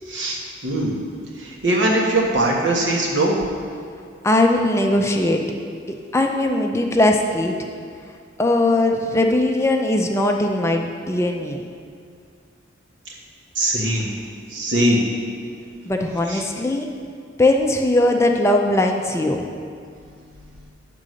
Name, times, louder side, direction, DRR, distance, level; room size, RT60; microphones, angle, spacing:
voice 1, 0.1-0.9 1.4-3.4 13.5-14.1 14.5-15.0 16.3-16.4, right 1 dB, 70° right, -2 dB, 1.4 m, -21 dB
voice 2, 4.2-5.4 6.1-7.6 8.4-11.6 15.9-16.9 17.4-19.5, left 1 dB, 15° left, 2 dB, 0.4 m, -19 dB
9.3 x 3.8 x 6.3 m, 2.3 s
head